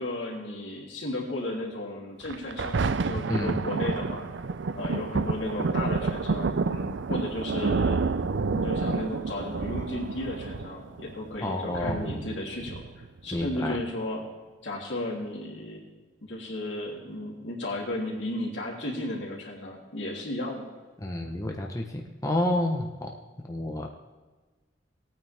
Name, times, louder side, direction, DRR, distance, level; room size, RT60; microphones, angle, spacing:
voice 1, 0.0-4.3 4.7-8.0 8.5-14.3 14.6-15.8 16.2-20.6, left 1 dB, 80° left, -3 dB, 3.2 m, -34 dB
Thunder, 2.2-13.2 13.9-14.0, right 4 dB, 75° right, 0.5 m, -29 dB
voice 2, 11.4-12.3 13.3-13.7 21.0-21.8 22.2-23.1 23.5-23.9, left 1 dB, 20° left, 1 dB, 1.0 m, -29 dB
19.0 x 9.2 x 3.5 m, 1.3 s
head